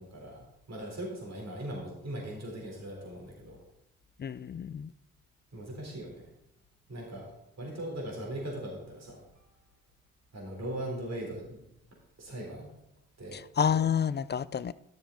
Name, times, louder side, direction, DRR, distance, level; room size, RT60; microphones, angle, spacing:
voice 1, 0.0-3.6 5.5-6.3 6.9-7.3 7.6-9.5 10.3-11.4 12.2-12.7 13.2-13.4, right 1 dB, 50° right, 3.9 m, -39 dB
voice 2, 4.2-4.9 13.3-14.7, left 7 dB, 30° left, 0.4 m, -29 dB
12.5 x 6.9 x 3.9 m
supercardioid pair, 50°, 35 cm